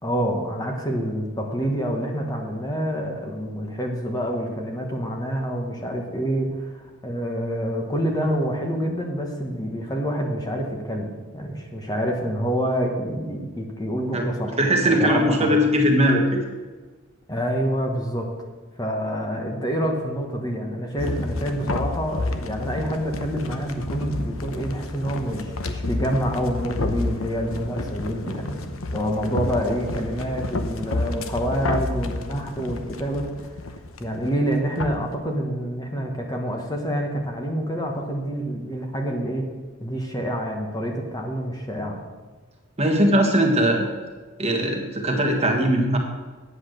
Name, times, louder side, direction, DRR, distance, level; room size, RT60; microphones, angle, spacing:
voice 1, 0.0-14.6 14.8-15.6 17.3-18.3 18.8-28.6 28.9-33.3 34.0-39.4 39.8-42.0, equal, 20° left, 1 dB, 1.3 m, -27 dB
voice 2, 14.1-16.4 42.8-43.9 44.4-46.0, equal, 30° right, 2 dB, 1.5 m, -20 dB
sound 1, 21.0-35.0, left 2 dB, 85° left, 0.9 m, -30 dB
9.7 x 8.2 x 6.7 m, 1.4 s
head